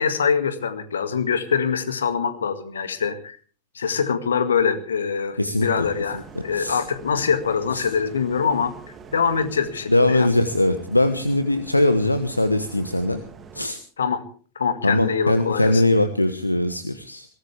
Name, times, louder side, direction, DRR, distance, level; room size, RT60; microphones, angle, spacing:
voice 1, 0.0-3.4 3.8-8.7 9.1-10.3 14.0-14.2 14.6-15.8, left 6 dB, 70° left, 10 dB, 2.0 m, -24 dB
voice 2, 5.4-5.9 6.1-6.2 6.5-6.8 7.7-7.9 9.9-13.2 13.5-13.8 14.8-17.3, left 1 dB, 85° left, 11 dB, 1.1 m, -21 dB
sound 1, 5.6-13.7, right 5 dB, 20° right, 2.5 m, -44 dB
22.0 x 18.5 x 3.4 m, 0.41 s
figure-of-eight pair, 90°, 0 cm